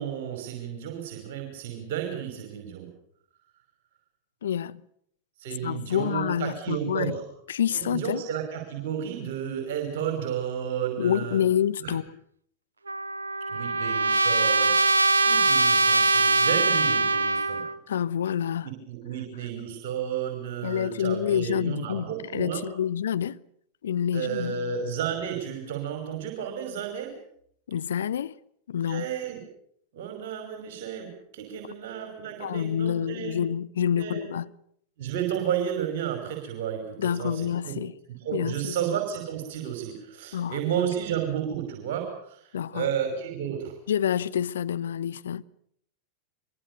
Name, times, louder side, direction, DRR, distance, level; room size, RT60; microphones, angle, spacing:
voice 1, 0.0-2.9 5.4-7.2 7.7-11.4 11.8-12.0 13.5-17.7 18.6-22.6 24.1-27.2 28.9-29.4 29.9-33.4 34.0-34.3 35.0-37.8 38.2-43.8, right 9 dB, 55° right, 5.5 m, -32 dB
voice 2, 4.4-4.8 5.6-7.2 7.5-8.2 11.0-12.2 17.9-18.7 20.6-23.4 23.8-24.6 27.7-28.4 28.7-29.1 32.4-34.5 37.0-37.9 38.3-38.7 40.3-40.6 42.5-42.9 43.9-45.4, left 9 dB, 65° left, 0.9 m, -27 dB
Trumpet, 12.9-17.8, right 3 dB, 75° right, 0.9 m, -22 dB
25.0 x 23.5 x 7.0 m
figure-of-eight pair, 90°, 0 cm